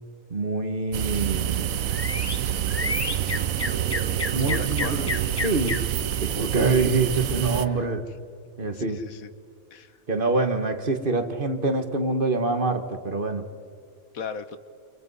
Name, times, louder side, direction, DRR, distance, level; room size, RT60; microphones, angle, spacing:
voice 1, 0.3-1.8 4.3-5.0 5.4-5.8 6.2-8.1 8.6-9.0 10.1-13.5, right 3 dB, 40° right, 8 dB, 1.6 m, -25 dB
sound 1, 0.9-7.7, right 11 dB, 75° right, 1.2 m, -27 dB
sound 2, 1.3-7.9, left 4 dB, 35° left, 0.4 m, -34 dB
voice 2, 4.4-5.1 8.7-9.3 9.7-10.0 14.1-14.6, left 6 dB, 80° left, 12 dB, 1.6 m, -36 dB
29.5 x 26.0 x 5.6 m, 2.2 s
omnidirectional pair, 1.5 m